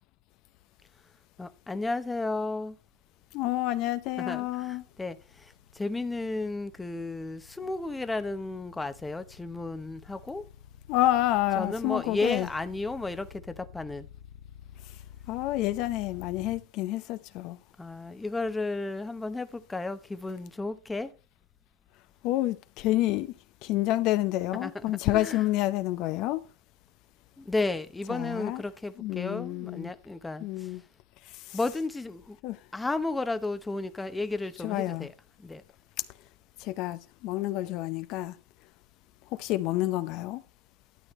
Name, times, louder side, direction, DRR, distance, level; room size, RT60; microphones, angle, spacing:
voice 1, 1.4-2.8 4.2-10.4 11.6-14.1 17.8-21.1 24.5-25.4 27.4-30.7 31.5-32.4 32.7-35.1 35.4-35.6, left 2 dB, 10° left, 0.9 m, -33 dB
sound 1, 3.3-16.6, left 9 dB, 70° left, 1.5 m, -50 dB
voice 2, 3.3-4.9 10.9-12.5 15.3-17.6 22.2-23.3 23.6-26.4 28.1-28.6 29.0-29.9 30.4-30.8 31.2-31.6 32.4-32.6 34.6-35.1 36.6-38.4 39.3-40.4, left 15 dB, 45° left, 0.7 m, -29 dB
12.0 x 11.0 x 3.1 m
supercardioid pair, 140°, 0 cm